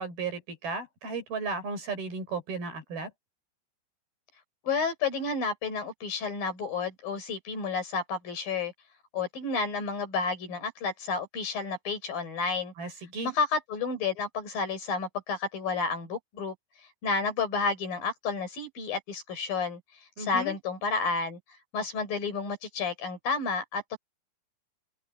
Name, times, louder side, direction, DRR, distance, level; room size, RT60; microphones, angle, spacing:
voice 1, 0.0-3.1 12.8-13.3 20.2-20.6, right 3 dB, 55° right, 8.4 m, -35 dB
voice 2, 4.6-8.7 9.1-12.7 13.2-16.5 17.0-19.8 20.2-21.4 21.7-24.0, left 4 dB, 55° left, 6.8 m, -31 dB
omnidirectional pair, 5.1 m